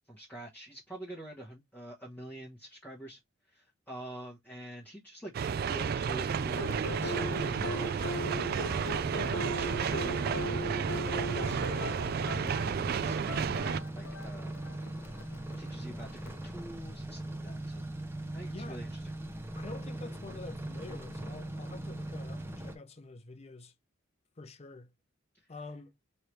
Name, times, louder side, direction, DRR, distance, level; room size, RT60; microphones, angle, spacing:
voice 1, 0.1-3.2 3.5-8.1 8.6-11.0 11.3-11.9 12.8-14.5 15.6-17.8 18.3-19.0, right 1 dB, 10° left, 1.0 m, -46 dB
sound 1, 5.3-13.8, right 7 dB, 50° right, 0.3 m, -32 dB
sound 2, 6.3-22.8, right 1 dB, 10° right, 0.7 m, -40 dB
sound 3, 6.5-16.4, left 1 dB, 90° left, 0.8 m, -40 dB
voice 2, 18.5-18.8 19.5-23.7 24.4-24.9 25.5-25.9, left 3 dB, 30° left, 0.6 m, -47 dB
4.5 x 3.3 x 3.1 m
head